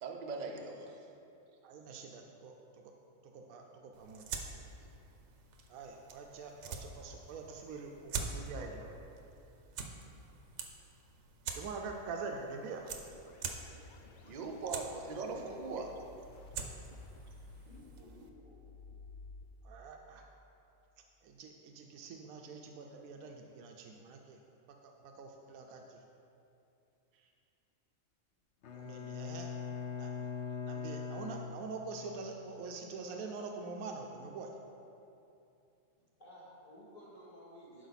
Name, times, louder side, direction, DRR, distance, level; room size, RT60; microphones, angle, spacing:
voice 1, 0.0-1.0 4.8-4.9 14.2-16.0, right 3 dB, 45° right, 3 dB, 0.6 m, -40 dB
voice 2, 1.6-2.9 3.2-4.4 5.7-8.9 11.5-13.0 19.6-20.2 21.2-24.4 24.8-26.0 28.7-29.5 30.0-30.3 30.6-34.5, right 4 dB, 90° right, 2 dB, 1.1 m, -45 dB
sound 1, 3.9-18.3, right 4 dB, 65° right, 1.0 m, -46 dB
sound 2, 12.6-19.4, left 4 dB, 85° left, 0.4 m, -55 dB
voice 3, 17.7-18.6 36.2-37.9, equal, 35° left, -7 dB, 1.9 m, -54 dB
Bowed string instrument, 28.6-32.2, left 6 dB, 60° left, 0.9 m, -41 dB
11.5 x 4.8 x 4.0 m, 2.7 s
omnidirectional pair, 1.4 m